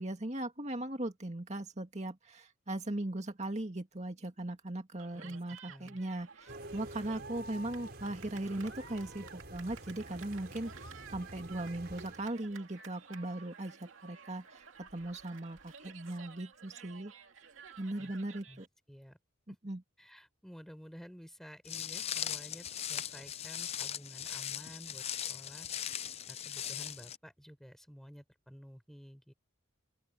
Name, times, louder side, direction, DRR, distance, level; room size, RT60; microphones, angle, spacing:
voice 1, 0.0-17.1 17.8-18.7 19.6-19.8, right 1 dB, 35° right, 2.1 m, -39 dB
Cheering, 5.0-18.7, right 5 dB, 70° right, 2.5 m, -53 dB
voice 2, 5.1-6.0 18.0-18.1 18.5-18.6 18.9-19.2 19.5-19.6 20.0-25.7 26.3-29.3, equal, ahead, 6.4 m, -52 dB
sound 1, 6.5-12.4, right 1 dB, 50° right, 6.5 m, -49 dB
Walk footsteps, 21.7-27.2, left 10 dB, 30° left, 0.5 m, -39 dB
open air
head